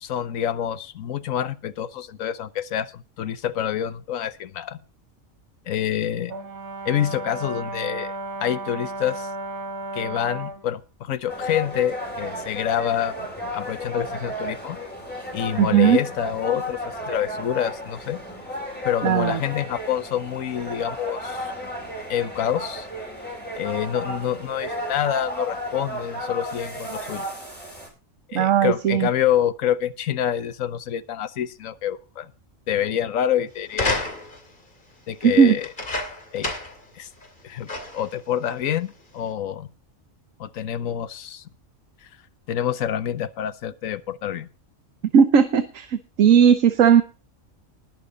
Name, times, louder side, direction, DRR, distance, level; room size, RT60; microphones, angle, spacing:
voice 1, 0.0-4.8 5.7-6.3 6.8-8.1 8.4-9.3 9.9-13.3 13.5-14.8 15.3-18.2 18.8-21.5 22.1-22.9 23.5-27.3 28.3-32.3 32.7-34.1 35.1-35.7 36.3-36.5 37.0-37.1 37.4-39.7 40.4-41.4 42.5-44.5, left 10 dB, 85° left, 14 dB, 1.3 m, -27 dB
Brass instrument, 6.3-10.7, right 2 dB, 60° right, 1.7 m, -33 dB
sound 1, 11.3-27.9, equal, 5° left, 5.3 m, -33 dB
voice 2, 15.6-16.0 19.0-19.4 28.3-29.1 35.2-35.6 45.1-47.0, right 7 dB, 80° right, 10 dB, 1.3 m, -17 dB
sound 2, 33.7-34.5 35.6-36.8 37.2-37.3 37.7-38.1 38.9-39.0, left 2 dB, 40° left, 2.8 m, -29 dB
20.0 x 7.2 x 3.9 m, 0.34 s
omnidirectional pair, 1.4 m